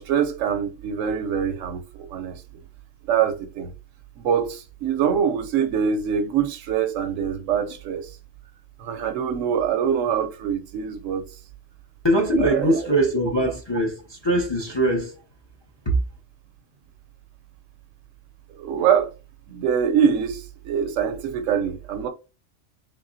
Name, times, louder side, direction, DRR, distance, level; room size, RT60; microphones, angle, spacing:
voice 1, 0.0-2.4 3.0-3.7 4.2-8.1 8.8-11.2 12.4-13.0 18.5-19.1 19.5-22.1, right 8 dB, 80° right, 1.0 m, -24 dB
voice 2, 12.0-15.1 15.9-16.0, right 1 dB, 30° left, 0.5 m, -22 dB
3.6 x 3.4 x 2.6 m
omnidirectional pair, 1.4 m